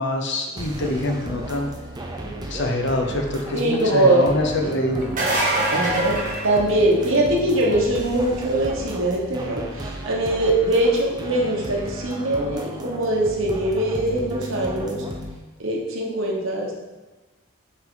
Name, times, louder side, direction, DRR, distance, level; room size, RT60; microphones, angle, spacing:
voice 1, 0.0-1.7 2.5-5.1, left 1 dB, 50° left, 2 dB, 0.8 m, -25 dB
sound 1, 0.6-15.3, right 1 dB, 20° right, 0.5 m, -34 dB
voice 2, 3.5-4.3 4.8-4.9 5.7-6.2 6.4-15.0 15.6-16.7, right 1 dB, 60° right, -1 dB, 1.1 m, -22 dB
sound 2, 5.0-7.2 12.7-12.8 14.7-14.8, right 1 dB, 35° right, 1.4 m, -24 dB
5.5 x 5.2 x 3.8 m, 1.2 s
head